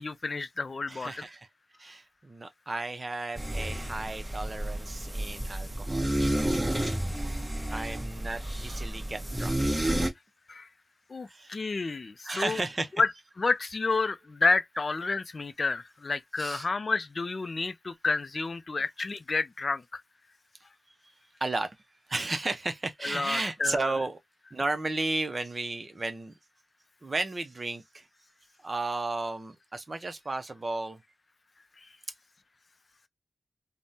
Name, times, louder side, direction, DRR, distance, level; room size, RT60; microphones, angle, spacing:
voice 1, 0.0-1.2 7.7-7.8 10.5-10.7 11.1-12.6 13.0-13.1 13.4-20.0 23.0-23.8, left 3 dB, 45° left, 0.3 m, -30 dB
voice 2, 0.9-1.5 1.8-6.9 7.7-9.6 11.3-11.5 12.2-12.9 16.4-16.7 21.4-21.8 22.1-24.2 24.5-26.4 27.0-28.1 28.6-31.0, right 2 dB, 35° right, 0.5 m, -34 dB
sound 1, 3.3-10.1, right 1 dB, 10° right, 0.8 m, -31 dB
3.4 x 2.0 x 2.7 m
wide cardioid pair, 85°, 0 cm